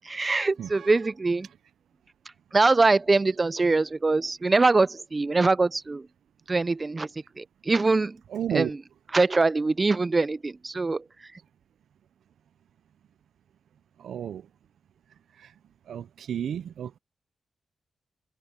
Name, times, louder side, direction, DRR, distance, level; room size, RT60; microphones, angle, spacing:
voice 1, 0.1-1.5 2.5-6.0 6.5-7.1 7.4-8.2 8.5-8.7 9.1-11.0, right 3 dB, 30° right, 0.5 m, -23 dB
voice 2, 0.6-1.0 8.3-8.7 14.0-14.5 15.4-15.5 15.9-17.0, right 9 dB, 85° right, 0.6 m, -32 dB
cardioid pair, 75°, 0 cm